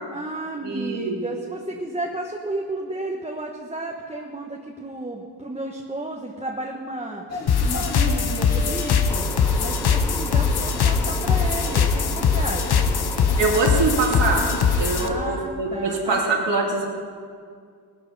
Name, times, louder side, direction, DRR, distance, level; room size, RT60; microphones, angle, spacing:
voice 1, 0.1-7.2 7.6-9.3 9.6-12.9 15.0-16.2, right 2 dB, 15° right, -1 dB, 1.2 m, -32 dB
voice 2, 0.6-1.2 13.4-14.5 14.8-16.8, right 3 dB, 75° right, -1 dB, 3.1 m, -23 dB
sound 1, 7.3-14.8, left 2 dB, 35° left, 2.6 m, -36 dB
sound 2, 7.5-15.1, left 6 dB, 60° left, 1.1 m, -21 dB
sound 3, 9.1-15.4, left 1 dB, 5° left, 0.8 m, -35 dB
18.5 x 12.5 x 5.5 m, 2.1 s
wide cardioid pair, 125°, 43 cm